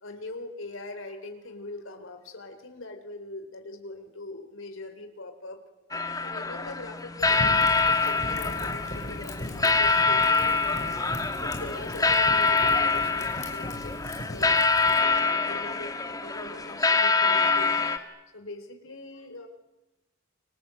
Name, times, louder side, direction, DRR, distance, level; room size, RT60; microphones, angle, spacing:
voice 1, 0.0-5.6 6.2-11.0 11.4-19.5, left 2 dB, 70° left, 6 dB, 4.1 m, -42 dB
sound 1, 5.9-18.0, left 4 dB, 20° left, 1.8 m, -25 dB
Fire, 7.2-15.0, left 1 dB, 35° left, 5.8 m, -39 dB
29.5 x 25.5 x 8.0 m, 1.0 s
head